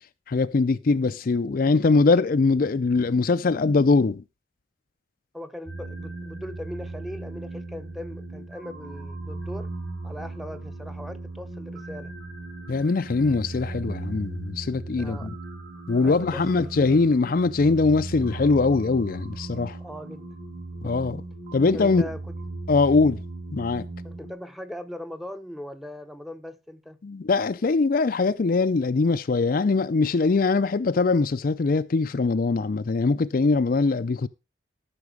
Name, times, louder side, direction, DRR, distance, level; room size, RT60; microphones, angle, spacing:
voice 1, 0.3-4.2 12.7-15.3 15.9-19.8 20.8-21.2 21.5-22.0 22.7-23.2 23.5-23.9 27.0-34.3, left 3 dB, 50° left, 0.4 m, -22 dB
voice 2, 5.3-9.7 10.0-12.1 15.0-15.3 16.0-16.9 19.8-20.3 20.8-21.1 21.7-22.4 24.0-27.0, left 1 dB, ahead, 0.7 m, -39 dB
sound 1, 5.7-24.3, right 2 dB, 65° right, 4.2 m, -37 dB
13.5 x 6.0 x 4.8 m
head